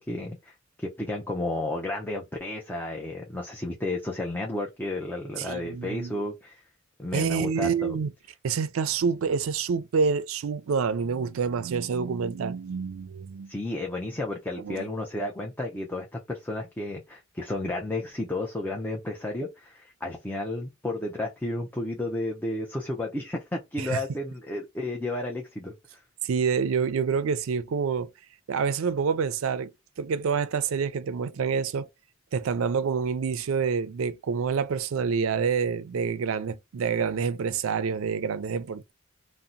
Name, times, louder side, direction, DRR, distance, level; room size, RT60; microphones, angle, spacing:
voice 1, 0.0-6.6 7.0-7.9 13.5-26.0, left 2 dB, 10° left, 0.5 m, -32 dB
voice 2, 5.4-6.2 7.1-8.1 8.4-13.5 14.6-14.9 23.8-24.0 26.2-28.1 28.5-29.7 30.0-31.9 32.3-38.9, right 6 dB, 75° right, 0.4 m, -27 dB
2.7 x 2.1 x 3.6 m
head